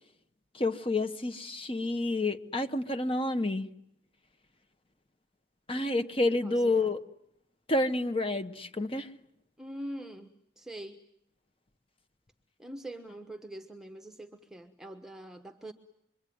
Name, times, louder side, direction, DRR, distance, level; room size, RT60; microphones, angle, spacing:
voice 1, 0.5-3.7 5.7-7.0 7.7-9.1, left 2 dB, 30° left, 1.3 m, -29 dB
voice 2, 6.4-6.9 9.6-11.0 12.6-15.7, right 1 dB, 5° right, 1.1 m, -44 dB
26.5 x 23.5 x 9.5 m
head